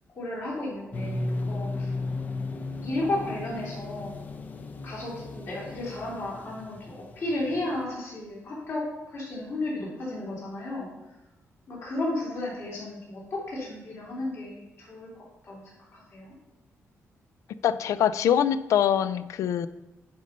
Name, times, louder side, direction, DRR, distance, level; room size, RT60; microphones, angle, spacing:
voice 1, 0.2-1.9 2.8-4.1 4.8-10.9 11.7-16.3, left 2 dB, 55° left, -5 dB, 3.2 m, -33 dB
sound 1, 0.9-7.9, left 2 dB, 30° left, 0.6 m, -35 dB
voice 2, 17.6-19.7, left 9 dB, 85° left, 14 dB, 0.4 m, -24 dB
10.5 x 5.3 x 4.2 m, 1.0 s
wide cardioid pair, 155°, 5 cm